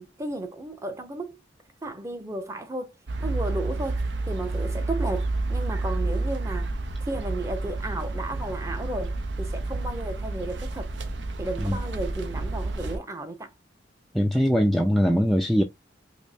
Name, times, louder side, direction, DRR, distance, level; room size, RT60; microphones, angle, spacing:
voice 1, 0.0-1.4 1.8-2.9 3.2-6.7 7.0-10.9 11.4-13.5, right 1 dB, 15° right, 0.7 m, -34 dB
sound 1, 3.1-13.0, right 2 dB, 70° right, 0.7 m, -30 dB
voice 2, 14.1-15.6, equal, ahead, 0.4 m, -21 dB
5.1 x 2.1 x 2.7 m
head